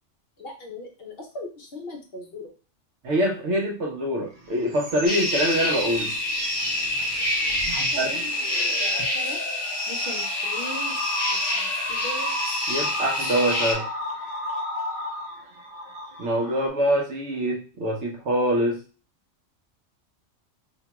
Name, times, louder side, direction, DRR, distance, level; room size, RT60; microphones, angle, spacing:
voice 1, 0.4-2.5 7.7-8.2 8.8-9.4 9.9-11.0 11.3-12.3, left 1 dB, 60° left, 1 dB, 0.8 m, -39 dB
voice 2, 3.0-6.1 8.0-8.1 12.7-13.9 16.2-18.8, equal, 70° right, 0 dB, 1.1 m, -24 dB
sound 1, 4.3-16.7, equal, 55° right, 0.7 m, -34 dB
sound 2, 5.1-13.7, left 2 dB, 25° left, 0.8 m, -27 dB
2.9 x 2.2 x 2.9 m, 0.35 s
omnidirectional pair, 1.3 m